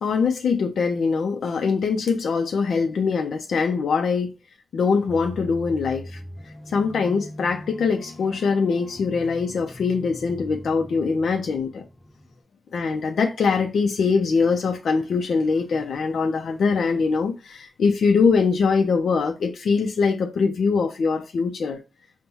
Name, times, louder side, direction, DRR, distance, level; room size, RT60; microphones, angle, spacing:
voice 1, 0.0-4.3 4.7-6.2 6.7-11.8 12.7-21.8, left 5 dB, 80° left, 0.5 m, -22 dB
sound 1, 4.8-12.4, equal, 15° left, 0.7 m, -41 dB
5.3 x 2.1 x 2.9 m
wide cardioid pair, 170°, 0 cm